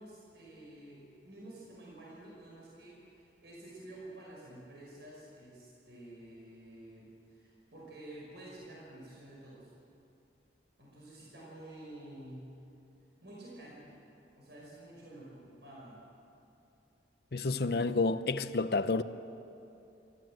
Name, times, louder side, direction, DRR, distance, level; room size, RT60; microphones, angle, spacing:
voice 1, 0.0-9.7 10.8-12.5 13.2-14.0 14.3-16.0 17.4-18.0, right 1 dB, 70° right, 5.4 m, -50 dB
voice 2, 17.3-19.0, left 3 dB, 60° left, 0.7 m, -30 dB
27.5 x 15.0 x 7.7 m
head